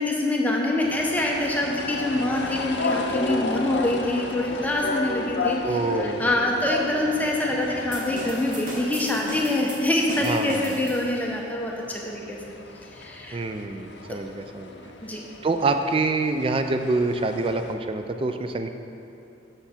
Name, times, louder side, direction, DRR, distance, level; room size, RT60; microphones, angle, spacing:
voice 1, 0.0-5.8 6.2-12.4 12.8-13.4 15.0-15.2, left 1 dB, 10° left, -1 dB, 0.7 m, -25 dB
sound 1, 0.8-17.7, left 3 dB, 60° left, 0.6 m, -34 dB
voice 2, 5.6-6.5 10.2-10.8 13.3-14.8 15.4-18.7, right 3 dB, 30° right, 7 dB, 0.4 m, -26 dB
sound 2, 7.9-11.3, right 1 dB, 45° right, 1.1 m, -36 dB
8.1 x 6.7 x 4.3 m, 2.8 s
head